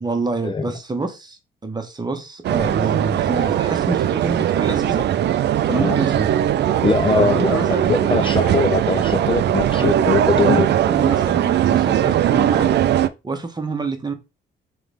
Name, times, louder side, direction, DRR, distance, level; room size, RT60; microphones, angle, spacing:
voice 1, 0.0-5.1 5.6-6.3 7.1-8.4 9.7-10.0 10.3-12.7 13.2-14.1, right 3 dB, 20° right, 0.9 m, -26 dB
sound 1, 2.4-13.1, right 11 dB, 60° right, 0.4 m, -19 dB
voice 2, 6.8-10.7, left 4 dB, 25° left, 0.4 m, -21 dB
3.8 x 3.2 x 3.3 m
cardioid pair, 90°, 20 cm